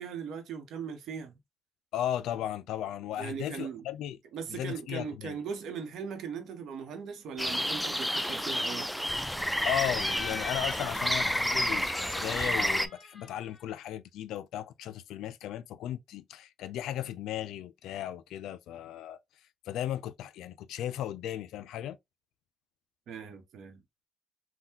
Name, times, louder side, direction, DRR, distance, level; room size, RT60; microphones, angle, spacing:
voice 1, 0.0-1.3 3.2-3.8 4.3-8.9 23.1-23.8, right 6 dB, 75° right, 0.9 m, -39 dB
voice 2, 1.9-4.2 4.5-5.4 9.6-19.2 19.7-22.0, left 11 dB, 85° left, 0.3 m, -36 dB
sound 1, 7.4-12.9, equal, ahead, 0.4 m, -30 dB
Laughter, 9.9-13.6, left 3 dB, 35° left, 0.8 m, -42 dB
3.6 x 2.2 x 2.7 m
cardioid pair, 90°, 0 cm